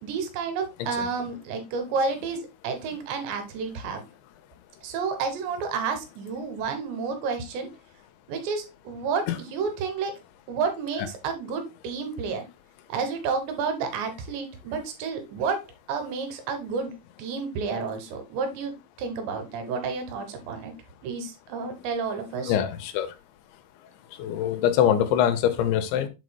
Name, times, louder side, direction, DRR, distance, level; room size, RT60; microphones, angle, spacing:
voice 1, 0.0-4.0 4.8-7.7 8.3-10.1 10.5-12.5 12.9-15.6 15.9-18.7 19.0-20.7 21.0-22.5, right 5 dB, 80° right, 7 dB, 3.5 m, -30 dB
voice 2, 22.4-23.1 24.1-26.1, left 10 dB, 90° left, 9 dB, 3.2 m, -24 dB
8.0 x 6.1 x 2.2 m, 0.24 s
omnidirectional pair, 5.1 m